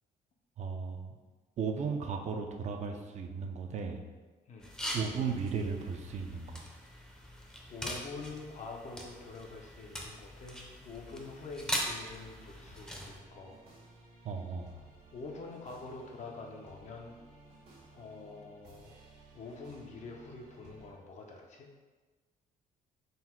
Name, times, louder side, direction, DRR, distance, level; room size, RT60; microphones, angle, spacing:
voice 1, 0.6-1.2 1.6-4.0 4.9-6.7 14.2-14.7, right 5 dB, 50° right, 4 dB, 0.4 m, -35 dB
sound 1, 4.6-13.2, equal, 5° left, 0.6 m, -41 dB
voice 2, 7.7-13.6 15.1-17.1 17.9-18.9 19.3-21.7, left 3 dB, 50° left, 1 dB, 0.6 m, -46 dB
sound 2, 12.0-20.9, right 1 dB, 90° right, 1.2 m, -57 dB
3.9 x 2.1 x 4.2 m, 1.3 s
cardioid pair, 110°, 15 cm